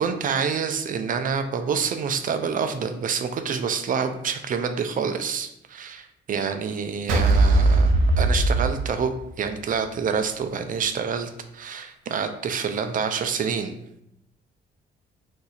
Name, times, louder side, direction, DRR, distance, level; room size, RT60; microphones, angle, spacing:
voice 1, 0.0-13.7, right 6 dB, 45° right, 8 dB, 0.4 m, -27 dB
sound 1, 7.1-9.4, right 2 dB, 90° right, 0.6 m, -19 dB
2.7 x 2.4 x 4.1 m, 0.78 s
cardioid pair, 90°, 20 cm